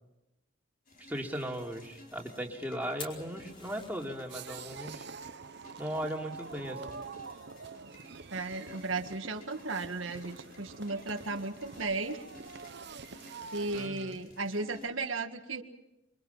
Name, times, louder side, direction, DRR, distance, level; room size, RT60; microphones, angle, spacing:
sound 1, 0.9-14.9, left 2 dB, 45° left, 4.5 m, -57 dB
voice 1, 1.1-5.1 5.8-7.0 13.7-14.2, equal, 10° right, 0 dB, 3.3 m, -37 dB
Fire, 2.8-14.2, left 3 dB, 25° left, 4.9 m, -56 dB
sound 2, 4.3-13.9, right 5 dB, 60° right, 1.0 m, -46 dB
voice 2, 8.3-12.2 13.5-15.6, right 3 dB, 75° right, 6 dB, 1.8 m, -35 dB
27.0 x 24.5 x 5.7 m, 0.91 s
head